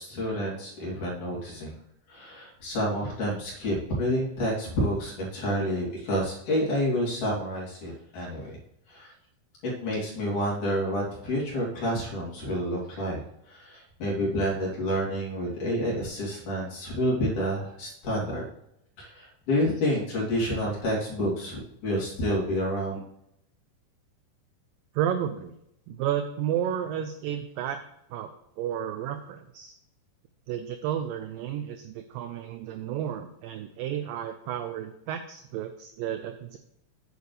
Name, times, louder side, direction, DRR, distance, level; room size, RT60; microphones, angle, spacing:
voice 1, 0.0-1.7 2.1-8.6 8.9-9.1 9.8-18.4 19.0-23.0, equal, 50° left, -5 dB, 4.0 m, -29 dB
voice 2, 24.9-25.6 25.9-27.8 28.1-28.3 28.6-29.7 30.5-36.6, right 10 dB, 85° right, 9 dB, 2.0 m, -32 dB
9.3 x 9.3 x 3.3 m, 0.78 s
omnidirectional pair, 4.7 m